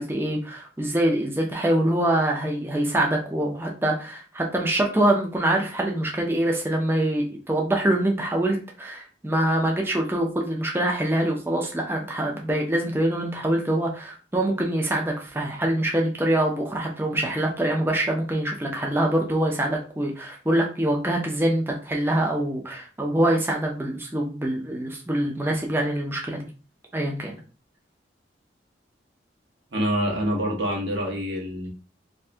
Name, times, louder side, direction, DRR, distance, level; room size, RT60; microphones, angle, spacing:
voice 1, 0.0-26.4 26.9-27.4, right 1 dB, 10° right, 0 dB, 0.5 m, -24 dB
voice 2, 29.7-31.7, equal, 75° right, -1 dB, 1.0 m, -26 dB
2.6 x 2.5 x 3.3 m, 0.36 s
head